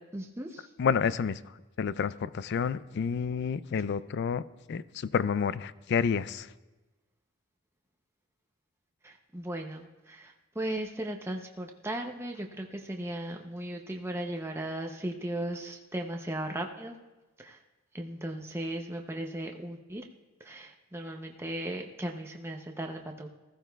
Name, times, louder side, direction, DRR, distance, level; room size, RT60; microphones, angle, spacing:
voice 1, 0.1-0.7 9.0-16.9 17.4-17.6 17.9-20.0 20.4-23.3, right 1 dB, 10° right, 2 dB, 0.6 m, -37 dB
voice 2, 0.8-1.4 1.8-4.4 4.7-6.5, left 6 dB, 50° left, 17 dB, 0.3 m, -29 dB
19.5 x 14.5 x 2.3 m, 1.1 s
head